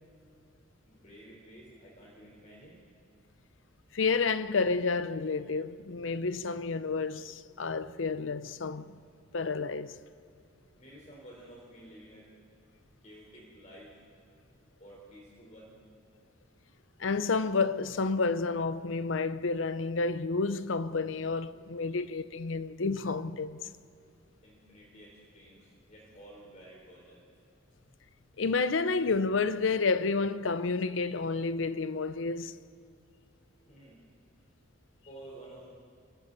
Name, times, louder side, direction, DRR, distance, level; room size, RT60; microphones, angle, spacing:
voice 1, 0.9-2.8 10.8-12.3 13.0-13.9 14.8-15.8 24.4-27.3 33.7-34.0 35.1-35.7, right 1 dB, 40° left, 4.0 m, -52 dB
voice 2, 3.9-9.0 9.3-10.0 17.0-23.7 28.4-32.6, left 4 dB, 80° left, 0.7 m, -30 dB
29.5 x 24.5 x 4.1 m
head